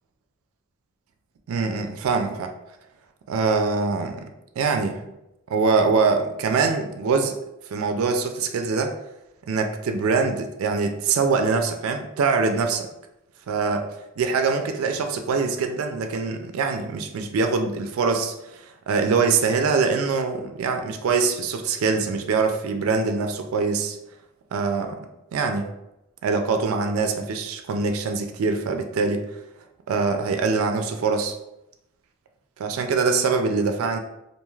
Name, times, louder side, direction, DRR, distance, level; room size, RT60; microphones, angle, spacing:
voice 1, 1.5-2.5 3.3-4.2 4.6-5.0 5.5-7.3 7.7-8.9 9.5-12.9 13.5-13.8 14.2-24.0 24.5-25.1 25.3-25.7 26.2-29.3 29.9-31.3 32.6-34.0, right 4 dB, 80° right, 5 dB, 0.4 m, -23 dB
2.5 x 2.3 x 3.1 m, 0.88 s
head